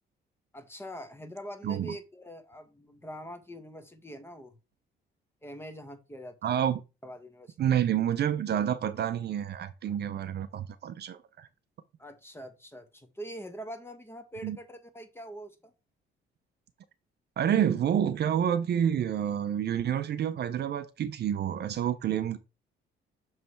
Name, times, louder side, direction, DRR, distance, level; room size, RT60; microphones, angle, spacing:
voice 1, 0.5-4.5 5.4-6.6 7.0-7.8 12.0-15.7, equal, 10° left, 1.1 m, -44 dB
voice 2, 6.4-6.8 7.6-11.5 14.4-14.6 17.4-22.4, right 9 dB, 55° right, 0.5 m, -28 dB
6.7 x 3.2 x 4.4 m
cardioid pair, 90°, 20 cm